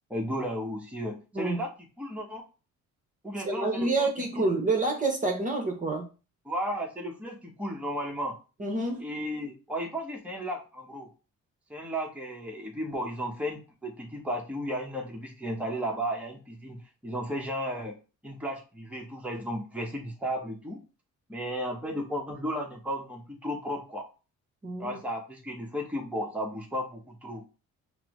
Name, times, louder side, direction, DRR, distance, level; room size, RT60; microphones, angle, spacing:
voice 1, 0.1-1.7 2.0-2.4 3.2-4.5 6.4-8.4 9.0-11.1 11.7-18.0 18.2-20.8 21.3-24.1 24.8-27.4, equal, 5° right, 0 dB, 1.0 m, -34 dB
voice 2, 3.4-6.1 8.6-9.1 24.6-25.0, right 2 dB, 25° right, 2 dB, 0.9 m, -28 dB
5.9 x 2.0 x 3.0 m, 0.33 s
cardioid pair, 90°, 30 cm